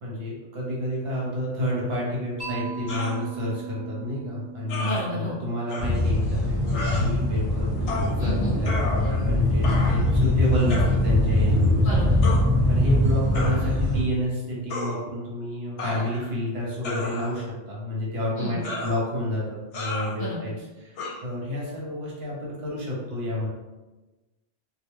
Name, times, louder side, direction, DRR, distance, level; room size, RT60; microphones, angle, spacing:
voice 1, 0.0-11.8 12.7-20.5 20.8-20.9 21.2-23.5, left 1 dB, 60° right, -4 dB, 0.9 m, -29 dB
Mallet percussion, 2.4-6.4, right 6 dB, 15° left, 1.0 m, -38 dB
sound 1, 2.9-3.2 4.7-5.0 5.7-5.9 6.7-7.0 7.9-8.1 8.6-9.3 9.6-10.1 10.7-11.0 12.2-12.4 13.3-13.6 14.7-14.9 15.8-16.3 16.8-17.5 18.6-19.0 19.7-20.1 21.0-21.1, left 2 dB, 75° left, 0.9 m, -32 dB
voice 2, 4.8-5.4 8.2-8.6 11.8-12.5 18.4-18.6 20.2-20.4, equal, 55° left, -6 dB, 0.7 m, -32 dB
sound 2, 5.8-14.0, left 1 dB, 10° right, 0.9 m, -22 dB
2.3 x 2.2 x 3.0 m, 1.1 s
omnidirectional pair, 1.2 m